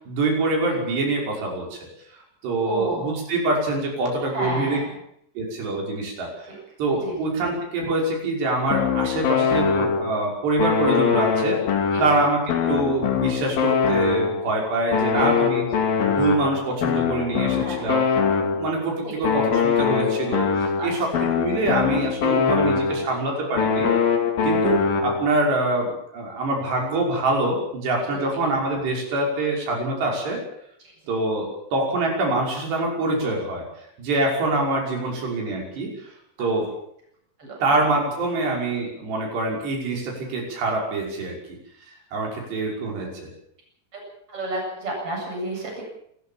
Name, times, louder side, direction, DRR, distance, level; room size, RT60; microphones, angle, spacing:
voice 1, 0.1-1.8 2.4-4.8 5.4-6.5 6.8-11.6 12.0-15.6 16.1-18.0 18.6-23.9 24.4-30.4 31.1-33.7 34.0-35.9 36.4-36.7 37.6-41.4 42.1-43.3, right 2 dB, 80° right, -1 dB, 8.0 m, -25 dB
voice 2, 2.7-3.1 4.3-4.9 7.0-7.2 11.9-12.0 15.1-15.5 17.6-17.8 19.0-19.1 20.8-20.9 28.1-28.2 37.4-37.6 43.9-44.0 44.3-45.8, right 1 dB, 30° right, -1 dB, 8.8 m, -31 dB
sound 1, 8.7-10.2 10.6-14.5 14.9-18.8 19.2-23.2 23.6-25.4, left 6 dB, 60° left, 4.0 m, -23 dB
28.0 x 14.5 x 7.4 m, 0.71 s
omnidirectional pair, 4.8 m